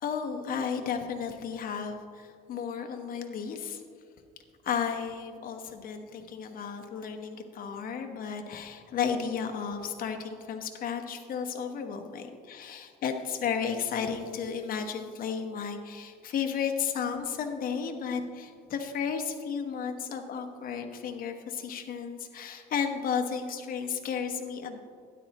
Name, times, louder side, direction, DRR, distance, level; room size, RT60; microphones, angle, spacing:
voice 1, 0.0-3.8 4.6-24.8, left 7 dB, 55° left, 5 dB, 1.1 m, -33 dB
12.5 x 10.0 x 3.0 m, 2.2 s
cardioid pair, 110°, 17 cm